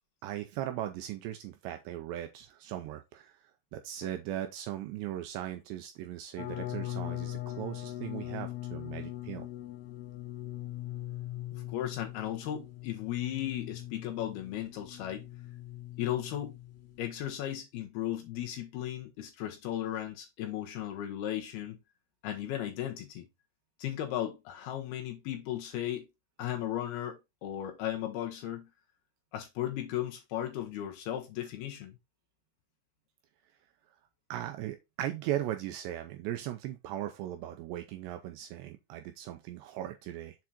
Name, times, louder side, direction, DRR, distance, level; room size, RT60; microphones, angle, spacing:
voice 1, 0.2-3.4 3.7-9.5 34.3-40.4, right 12 dB, 90° right, 2.5 m, -38 dB
sound 1, 6.4-17.3, left 14 dB, 90° left, 3.6 m, -41 dB
voice 2, 11.5-15.2 16.0-16.6 17.0-21.8 22.2-23.2 23.8-26.1 26.4-28.7 29.3-32.0, left 12 dB, 75° left, 2.4 m, -36 dB
7.4 x 4.4 x 4.0 m
omnidirectional pair, 5.5 m